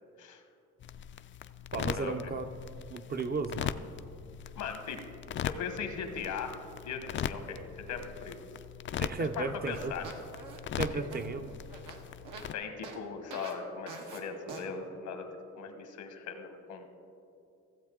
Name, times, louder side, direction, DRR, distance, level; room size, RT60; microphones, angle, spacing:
sound 1, 0.8-12.5, left 9 dB, 40° left, 0.4 m, -40 dB
voice 1, 1.7-2.5 2.9-3.8 9.0-9.9 10.8-11.5, right 3 dB, 30° right, 8 dB, 0.5 m, -34 dB
voice 2, 4.6-5.0 5.4-6.6 6.8-8.4 9.2-10.0 10.9-11.0 12.5-15.3 15.6-16.9, left 6 dB, 80° left, 6 dB, 1.2 m, -39 dB
sound 2, 9.7-12.5 12.8-13.0 13.3-13.6 13.9-14.2 14.5-14.7, right 5 dB, 90° right, 1.3 m, -45 dB
15.5 x 7.7 x 3.7 m, 2.6 s
cardioid pair, 90°, 30 cm